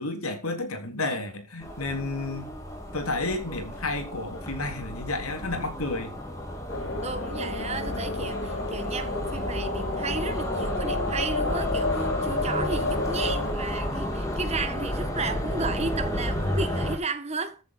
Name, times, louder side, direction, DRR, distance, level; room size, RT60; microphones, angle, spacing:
voice 1, 0.0-2.5 2.9-6.1, left 2 dB, 85° left, 3.6 m, -31 dB
sound 1, 1.6-17.0, equal, 15° left, 4.0 m, -32 dB
sound 2, 6.7-13.5, left 3 dB, 60° left, 1.7 m, -32 dB
voice 2, 7.0-17.6, right 3 dB, 30° right, 1.7 m, -33 dB
14.5 x 8.1 x 5.1 m
head